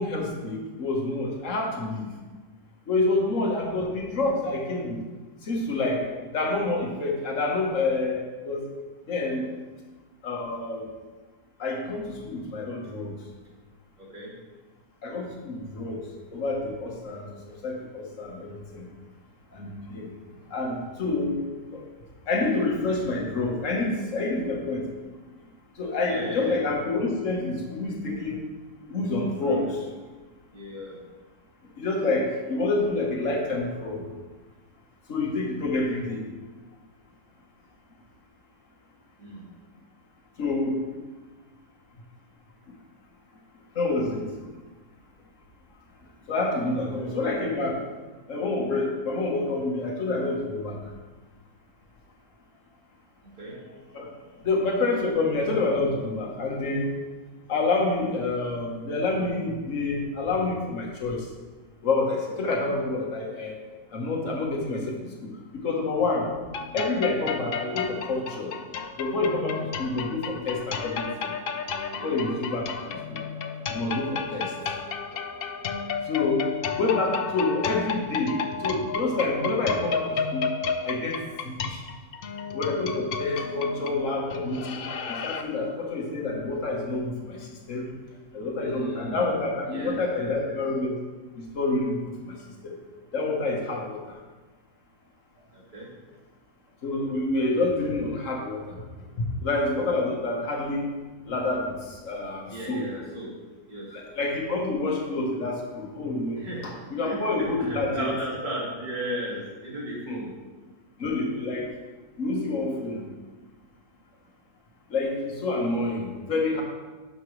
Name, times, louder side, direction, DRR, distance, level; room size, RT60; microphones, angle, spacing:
voice 1, 0.0-2.1 2.9-5.0 5.4-8.7 9.1-9.5 10.2-10.9 11.6-13.1 15.0-16.0 16.3-17.3 17.6-18.9 19.5-20.1 20.5-21.4 21.7-21.8 22.3-24.9 25.8-28.4 28.9-29.8 31.8-34.0 35.1-36.2 40.4-40.8 43.7-44.2 46.3-47.8 48.3-50.8 53.9-54.1 54.4-56.9 57.5-61.2 61.8-63.5 63.9-65.1 65.5-66.3 66.7-68.5 69.0-71.3 72.0-73.2 73.7-74.5 76.1-80.5 80.8-81.2 81.4-81.8 82.5-84.8 85.1-87.9 88.3-91.0 91.4-92.0 92.2-92.3 92.6-92.7 93.1-94.0 96.8-98.8 99.4-100.9 101.3-102.8 103.9-108.1 110.1-110.2 111.0-111.7 112.2-113.0 114.9-116.6, left 2 dB, 55° left, 0 dB, 1.6 m, -28 dB
voice 2, 3.0-3.4 14.0-14.3 17.2-17.3 26.1-26.6 29.5-29.6 30.5-31.0 39.2-39.4 46.7-46.9 53.2-54.5 71.9-72.1 88.5-89.3 89.7-90.6 95.5-95.9 102.5-103.3 103.7-104.0 106.4-106.7 107.0-110.3, right 1 dB, 30° right, -6 dB, 2.3 m, -36 dB
sound 1, 66.5-85.4, left 6 dB, 90° left, 0.5 m, -32 dB
11.0 x 5.9 x 3.2 m, 1.3 s
omnidirectional pair, 1.7 m